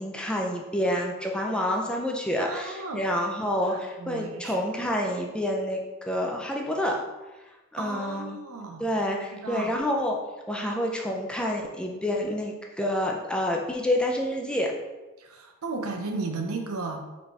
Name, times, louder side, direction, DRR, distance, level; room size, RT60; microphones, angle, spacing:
voice 1, 0.0-7.0 7.7-8.4 8.8-10.2 10.5-14.7, left 1 dB, 5° left, 0 dB, 0.4 m, -28 dB
voice 2, 2.4-3.0 3.5-3.6 4.0-4.6 7.8-8.9 9.3-9.8 15.2-17.0, right 3 dB, 85° right, 3 dB, 0.7 m, -34 dB
4.0 x 3.6 x 3.3 m, 1.1 s
head